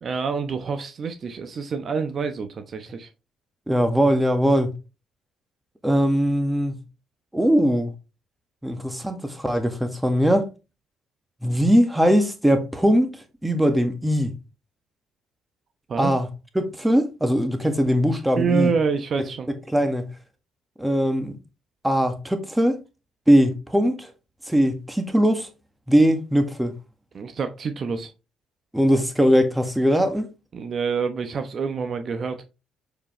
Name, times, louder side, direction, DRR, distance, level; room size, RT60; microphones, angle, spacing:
voice 1, 0.0-3.1 15.9-16.1 18.4-19.5 27.1-28.1 30.5-32.5, right 5 dB, 50° right, 0.9 m, -27 dB
voice 2, 3.7-4.7 5.8-6.8 7.3-7.9 8.6-10.5 11.4-13.1 13.4-14.3 16.0-16.3 16.6-18.7 19.7-20.1 20.8-21.4 21.8-22.8 23.3-24.1 24.5-25.5 25.9-26.7 28.7-30.3, equal, 10° right, 1.7 m, -20 dB
6.8 x 5.1 x 3.2 m
supercardioid pair, 60°, 0 cm